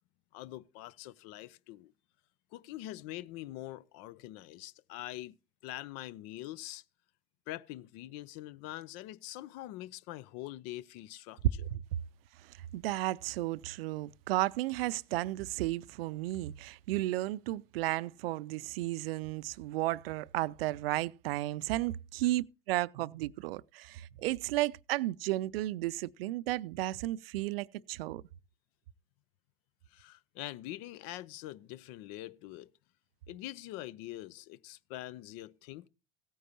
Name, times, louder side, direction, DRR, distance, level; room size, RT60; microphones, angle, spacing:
voice 1, 0.3-1.9 2.5-5.3 5.6-6.8 7.5-11.7 29.9-32.7 33.3-35.9, left 15 dB, 60° left, 0.6 m, -44 dB
voice 2, 12.7-28.2, right 17 dB, 75° right, 0.5 m, -33 dB
16.5 x 9.3 x 2.8 m
hypercardioid pair, 80°, 29 cm